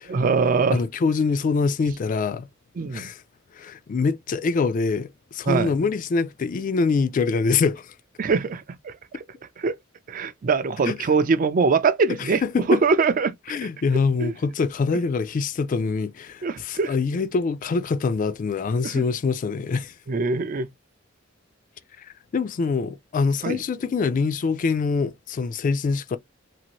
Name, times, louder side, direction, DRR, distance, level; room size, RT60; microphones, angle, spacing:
voice 1, 0.1-0.8 2.8-3.1 5.5-5.7 8.2-9.2 9.6-9.7 10.1-12.4 12.7-13.3 14.2-14.3 16.4-16.9 18.8-19.0 20.1-20.7 23.4-23.6, right 4 dB, 40° right, 0.4 m, -22 dB
voice 2, 0.7-2.5 2.9-3.2 3.5-7.9 10.8-11.1 12.1-12.8 13.5-19.9 22.0-26.2, left 4 dB, 40° left, 0.3 m, -24 dB
2.7 x 2.5 x 2.9 m
head